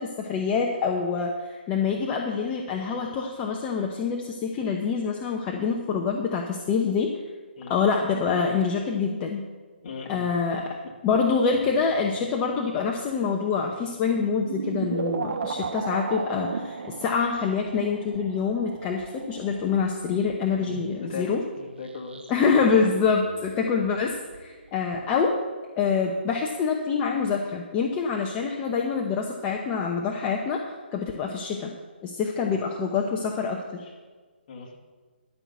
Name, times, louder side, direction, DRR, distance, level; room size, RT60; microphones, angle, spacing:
voice 1, 0.0-7.1 7.7-9.4 10.1-10.7 11.0-21.4 22.3-25.3 25.7-30.6 30.9-31.7 32.0-33.9, left 5 dB, 20° left, 1 dB, 0.9 m, -26 dB
voice 2, 9.8-10.3 20.6-21.3 21.6-22.5 32.4-32.5 34.5-34.8, left 4 dB, 40° left, 0 dB, 2.3 m, -38 dB
sound 1, 11.5-13.0 13.5-13.8 14.4-22.5 22.8-25.0 25.3-25.4, right 5 dB, 65° right, 1.0 m, -36 dB
12.0 x 5.9 x 8.2 m, 1.4 s
hypercardioid pair, 150°, 6 cm